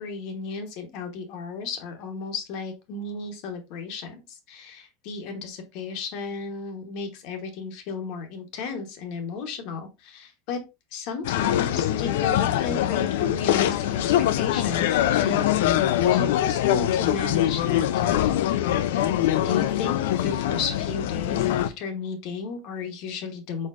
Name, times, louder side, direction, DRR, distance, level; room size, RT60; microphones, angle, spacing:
voice 1, 0.0-10.6 10.9-14.0 14.3-15.4 16.1-18.5 19.4-23.7, left 4 dB, 55° left, 6 dB, 1.1 m, -34 dB
sound 1, 11.2-21.7, left 12 dB, 85° left, 0.4 m, -23 dB
4.7 x 4.3 x 2.5 m, 0.25 s
supercardioid pair, 160°, 0 cm